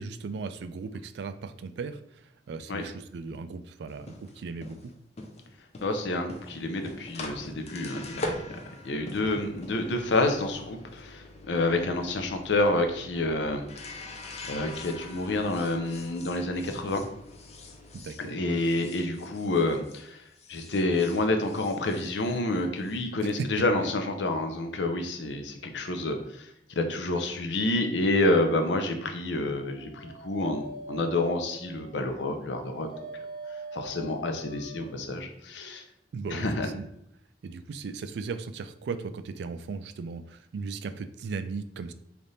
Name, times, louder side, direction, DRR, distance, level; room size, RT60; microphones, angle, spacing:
voice 1, 0.0-4.9 9.2-9.5 17.9-18.6 23.2-23.9 36.1-36.9 37.4-41.9, right 4 dB, 65° right, 10 dB, 0.3 m, -37 dB
sound 1, 3.9-20.1 20.3-23.0, left 2 dB, 35° left, 0.5 m, -43 dB
voice 2, 5.8-8.2 8.8-13.7 14.5-17.0 18.3-20.2 20.5-26.5 26.8-32.9 33.7-35.8 36.3-36.7, left 2 dB, 80° left, 5 dB, 0.6 m, -28 dB
Dog, 29.4-35.0, right 2 dB, 55° left, 1.2 m, -43 dB
3.4 x 2.5 x 4.0 m, 0.74 s
head